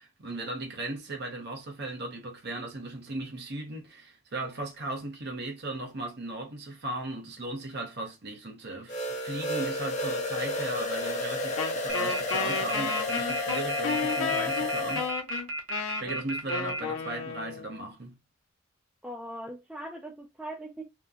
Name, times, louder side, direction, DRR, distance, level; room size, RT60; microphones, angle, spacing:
voice 1, 0.0-15.1 15.8-18.2, right 2 dB, 50° right, 0.9 m, -37 dB
sound 1, 8.9-15.1, left 2 dB, 35° left, 0.8 m, -31 dB
Wind instrument woodwind instrument, 11.6-17.9, left 5 dB, 70° left, 0.7 m, -33 dB
sound 2, 11.9-16.8, right 1 dB, 85° right, 1.0 m, -33 dB
voice 2, 19.0-20.8, right 1 dB, 5° right, 0.5 m, -40 dB
2.9 x 2.2 x 3.6 m
head